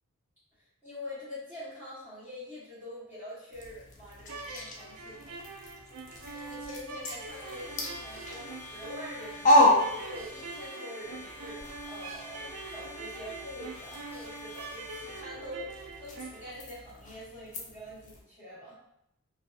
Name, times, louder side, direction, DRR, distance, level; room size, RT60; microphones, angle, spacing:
voice 1, 0.8-5.4 6.3-18.7, left 1 dB, 10° right, -14 dB, 0.9 m, -45 dB
sound 1, 3.5-10.7 11.0-18.2, left 1 dB, 35° left, 0.4 m, -32 dB
sound 2, 4.2-16.5, right 3 dB, 80° right, 0.4 m, -44 dB
sound 3, 7.3-15.2, left 2 dB, 40° right, 0.8 m, -47 dB
2.5 x 2.3 x 2.3 m, 0.79 s
head